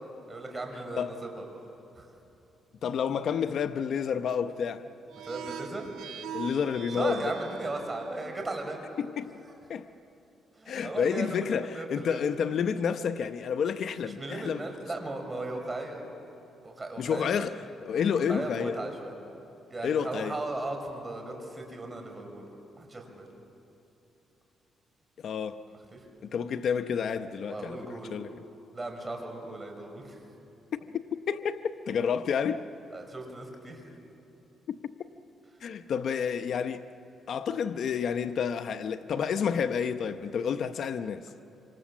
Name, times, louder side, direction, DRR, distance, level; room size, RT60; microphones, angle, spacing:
voice 1, 0.3-1.4 2.0-2.1 5.2-5.9 6.9-8.8 10.6-11.4 11.7-12.2 14.2-16.0 16.6-17.4 17.9-18.0 18.3-19.1 19.7-22.5 22.7-23.3 25.9-26.0 27.4-28.1 28.7-30.2 32.9-33.8, right 2 dB, 25° right, 5.6 m, -37 dB
voice 2, 2.8-4.9 6.3-7.3 9.0-9.3 9.7-9.9 10.7-14.6 17.0-18.8 19.8-20.4 25.2-25.6 26.2-27.8 28.1-28.3 30.9-31.0 31.3-32.6 34.7-34.8 35.6-36.8 37.3-41.3, left 7 dB, 60° left, 0.8 m, -30 dB
sound 1, 5.1-8.4, right 8 dB, 80° right, 1.6 m, -42 dB
26.5 x 26.5 x 7.3 m
cardioid pair, 90°, 0 cm